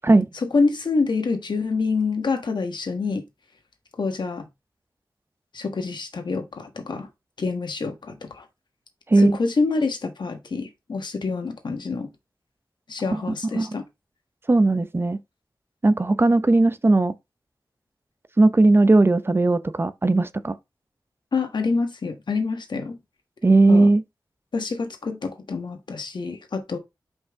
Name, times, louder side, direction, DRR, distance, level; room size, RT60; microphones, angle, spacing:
voice 1, 0.4-3.2 4.0-4.4 5.5-7.1 7.4-8.4 9.2-12.1 12.9-13.8 21.3-23.0 23.7-23.9 24.5-26.8, left 4 dB, 80° left, 1.5 m, -26 dB
voice 2, 14.5-15.2 15.8-17.1 18.4-20.6 23.4-24.0, right 2 dB, 30° right, 0.7 m, -17 dB
5.7 x 5.3 x 3.6 m
wide cardioid pair, 90°, 8 cm